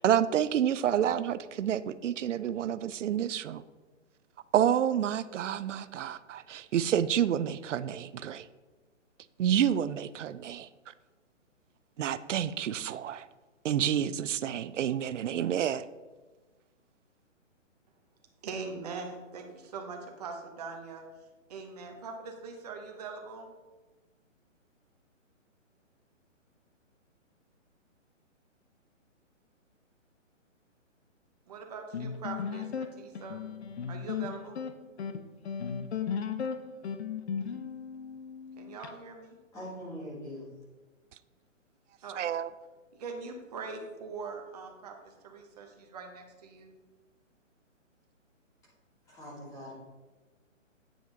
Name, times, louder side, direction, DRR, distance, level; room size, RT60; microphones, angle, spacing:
voice 1, 0.0-3.6 4.5-8.5 9.4-10.9 12.0-13.3 13.6-15.9 42.1-42.5, right 10 dB, 70° right, 15 dB, 0.5 m, -29 dB
voice 2, 18.4-21.0 21.5-23.5 31.5-33.4 33.9-34.6 38.6-39.4 42.0-42.3 42.9-46.7, right 4 dB, 30° right, 3 dB, 1.0 m, -42 dB
sound 1, 31.9-38.9, left 7 dB, 55° left, 0.7 m, -36 dB
voice 3, 39.5-40.5 49.1-49.7, equal, 10° left, -6 dB, 1.5 m, -42 dB
8.9 x 5.0 x 3.9 m, 1.3 s
hypercardioid pair, 165°, 39 cm